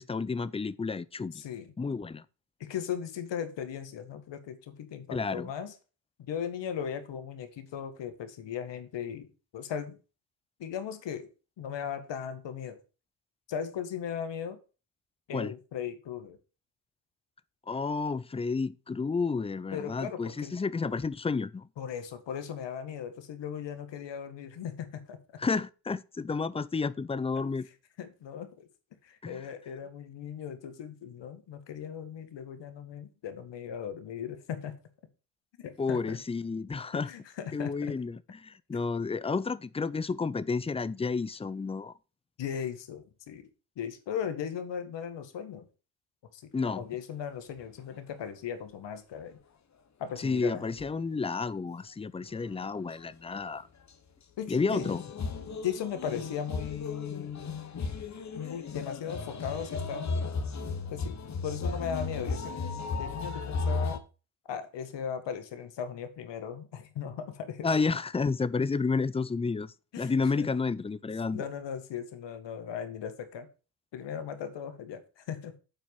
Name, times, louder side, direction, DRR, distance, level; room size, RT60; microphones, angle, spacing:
voice 1, 0.0-1.4 1.8-2.2 5.1-5.5 15.3-15.5 17.7-21.7 25.4-27.7 29.2-29.4 35.8-37.1 37.5-41.9 46.5-46.8 50.2-53.7 54.5-55.0 67.6-71.4, left 4 dB, 10° left, 0.5 m, -31 dB
voice 2, 1.3-1.7 2.6-5.7 6.3-9.3 9.5-10.0 10.6-11.3 11.6-12.8 13.5-14.6 15.3-16.4 19.7-20.6 21.8-25.2 28.0-28.7 29.0-34.7 35.6-36.2 36.9-37.9 42.4-43.5 43.8-45.7 46.3-49.4 50.0-50.7 54.4-54.9 55.6-57.5 58.3-60.3 60.9-62.5 62.9-64.0 64.5-67.7 69.9-70.5 71.3-73.5 73.9-75.6, left 8 dB, 60° left, 1.9 m, -37 dB
sound 1, 50.8-50.9 52.3-52.6 52.9-53.0 54.7-64.0, left 4 dB, 35° left, 1.4 m, -35 dB
7.6 x 4.7 x 7.1 m
supercardioid pair, 70°, 48 cm